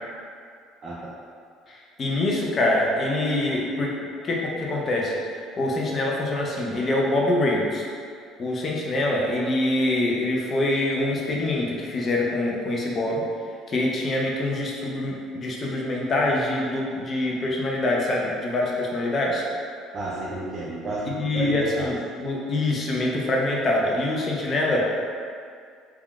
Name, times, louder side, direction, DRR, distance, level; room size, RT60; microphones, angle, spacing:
voice 1, 1.7-4.0 4.2-7.8 8.4-13.3 13.7-19.4 21.1-24.9, left 1 dB, 35° left, -2 dB, 0.5 m, -25 dB
voice 2, 19.9-21.9, right 2 dB, 35° right, -6 dB, 0.4 m, -31 dB
3.4 x 2.3 x 2.3 m, 2.2 s
cardioid pair, 130°, 0 cm